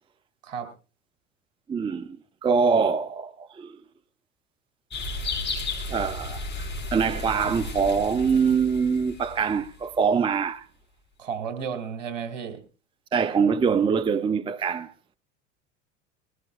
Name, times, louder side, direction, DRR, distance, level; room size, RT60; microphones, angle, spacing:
voice 1, 1.7-2.2 2.4-3.8 5.9-10.6 13.1-14.9, right 6 dB, 15° right, 0.6 m, -24 dB
sound 1, 4.9-9.9, left 3 dB, 30° left, 5.8 m, -34 dB
voice 2, 11.2-12.6, right 7 dB, 70° right, 2.7 m, -33 dB
20.5 x 16.0 x 2.5 m
hypercardioid pair, 80°, 38 cm